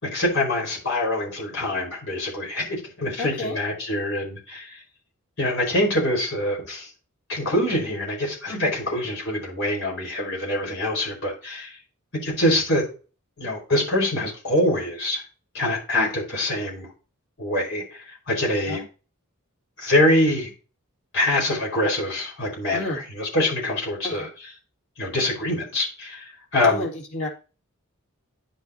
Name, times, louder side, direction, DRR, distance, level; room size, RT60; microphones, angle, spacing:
voice 1, 0.0-4.8 5.4-6.9 7.3-11.7 12.2-12.8 13.4-15.2 15.5-16.9 17.4-18.8 19.8-20.5 21.1-24.3 25.0-26.8, left 1 dB, 55° left, -2 dB, 4.8 m, -24 dB
voice 2, 3.2-3.6 8.5-8.7 18.7-18.9 22.7-23.0 24.0-24.3 26.6-27.3, left 1 dB, 90° left, -3 dB, 2.4 m, -31 dB
10.0 x 6.2 x 2.8 m, 0.35 s
head